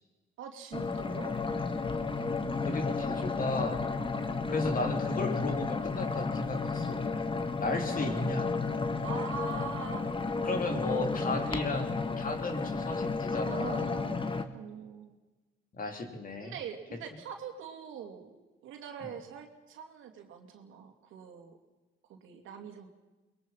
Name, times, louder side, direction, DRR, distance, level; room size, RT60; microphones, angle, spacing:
voice 1, 0.4-1.3 8.0-8.3 9.0-11.7 13.4-15.2 16.4-18.4 18.6-21.6 22.1-22.9, right 7 dB, 85° right, 4 dB, 2.8 m, -43 dB
sound 1, 0.7-14.4, left 4 dB, 25° left, 1.6 m, -32 dB
voice 2, 2.6-3.8 4.5-7.0 7.6-8.5 10.4-13.9 15.7-16.5 16.9-17.0 19.0-19.1, left 2 dB, 45° left, 6 dB, 3.3 m, -35 dB
22.5 x 21.5 x 5.7 m, 1.2 s
cardioid pair, 90°, 20 cm